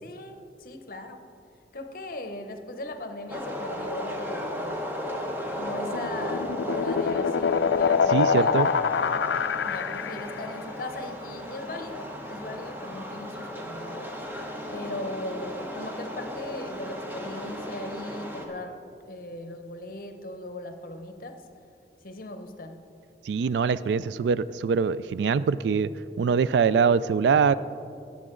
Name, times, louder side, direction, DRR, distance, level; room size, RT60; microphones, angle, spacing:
voice 1, 0.0-1.2 1.7-4.9 5.5-8.6 9.6-14.2 14.7-21.4 22.0-22.8, left 1 dB, 50° left, 7 dB, 0.8 m, -38 dB
sound 1, 3.3-18.5, equal, 10° right, 0.9 m, -36 dB
sound 2, 5.7-10.5, left 6 dB, 85° left, 0.4 m, -25 dB
voice 2, 8.1-8.7 23.3-25.9 26.2-27.5, right 6 dB, 80° right, 17 dB, 0.3 m, -23 dB
17.5 x 7.1 x 3.8 m, 2.6 s
head